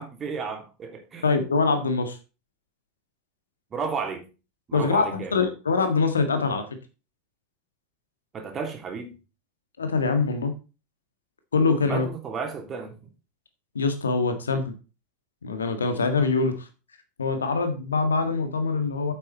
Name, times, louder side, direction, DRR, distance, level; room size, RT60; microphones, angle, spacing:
voice 1, 0.0-1.3 3.7-4.2 4.7-5.3 8.3-9.1 11.8-12.9, right 5 dB, 30° right, 4 dB, 3.1 m, -33 dB
voice 2, 1.2-2.2 4.7-6.6 9.8-10.5 11.5-12.1 13.7-14.7 15.4-16.7 17.2-19.1, left 4 dB, 85° left, 8 dB, 1.7 m, -24 dB
9.1 x 7.7 x 4.1 m, 0.32 s
hypercardioid pair, 85°, 0 cm